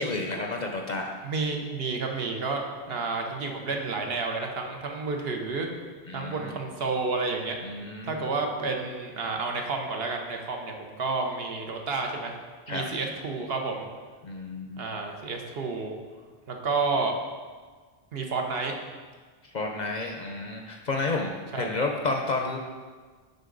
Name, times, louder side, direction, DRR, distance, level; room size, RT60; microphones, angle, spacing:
voice 1, 0.0-1.1 6.1-6.6 7.6-8.2 12.7-12.8 14.2-14.8 19.5-22.6, left 3 dB, 50° left, 2 dB, 0.6 m, -31 dB
voice 2, 1.2-2.6 2.9-5.7 6.1-7.6 8.0-12.3 12.7-13.9 14.8-16.0 16.5-17.1 18.1-18.7 21.5-21.7, right 4 dB, 65° right, 2 dB, 1.0 m, -30 dB
7.9 x 5.2 x 3.8 m, 1.5 s
omnidirectional pair, 1.1 m